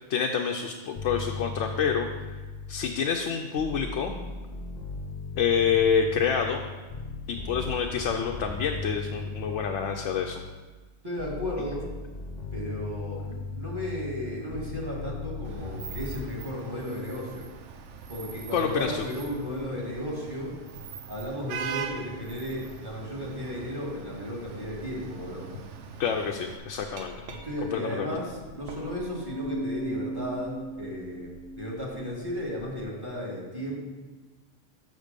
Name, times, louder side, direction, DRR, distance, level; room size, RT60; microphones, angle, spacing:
voice 1, 0.0-2.1 2.7-4.1 5.4-6.7 7.3-10.4 18.5-19.0 26.0-27.2 27.7-28.1, left 7 dB, 70° left, 2 dB, 0.9 m, -27 dB
sound 1, 1.0-3.1 3.6-10.7 11.2-16.2, left 3 dB, 40° left, 0.9 m, -38 dB
voice 2, 11.0-11.9 12.5-17.5 18.1-20.6 21.1-25.5 27.3-33.8, equal, 20° right, -4 dB, 1.9 m, -34 dB
Vehicle horn car horn honking / Traffic noise roadway noise, 15.4-26.6, right 6 dB, 75° right, 1.0 m, -41 dB
Glass, 27.0-32.8, right 1 dB, 55° right, 1.1 m, -39 dB
6.6 x 6.5 x 5.1 m, 1.3 s
omnidirectional pair, 1.3 m